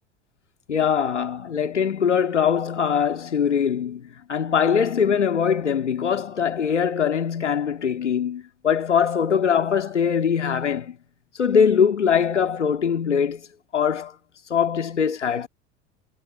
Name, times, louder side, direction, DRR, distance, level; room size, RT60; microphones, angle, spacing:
voice 1, 0.7-11.0 11.4-13.5 13.7-14.1 14.5-15.5, left 7 dB, 80° left, 2.2 m, -22 dB
figure-of-eight pair, 70°, 35 cm